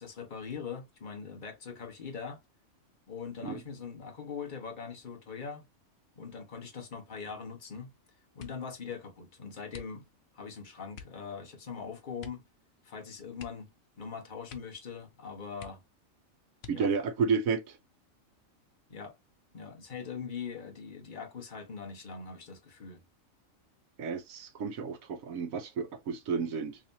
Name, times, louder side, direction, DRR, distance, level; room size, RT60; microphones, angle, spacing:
voice 1, 0.0-2.4 3.1-5.7 6.2-7.9 8.3-10.0 10.3-12.5 12.8-13.7 14.0-15.8 16.7-16.9 18.9-19.2 19.5-23.0, left 6 dB, 40° left, 1.2 m, -42 dB
sound 1, 8.3-8.8 9.7-10.3 10.9-11.2 12.2-12.5 12.8-12.9 13.3-14.1 14.4-14.9 15.2-15.3 15.6-16.1 16.6-17.1 17.8-18.4 18.8-19.2, left 8 dB, 80° left, 1.1 m, -50 dB
voice 2, 16.7-17.8 24.0-26.8, right 5 dB, 90° right, 1.2 m, -31 dB
3.5 x 3.4 x 2.7 m
omnidirectional pair, 1.4 m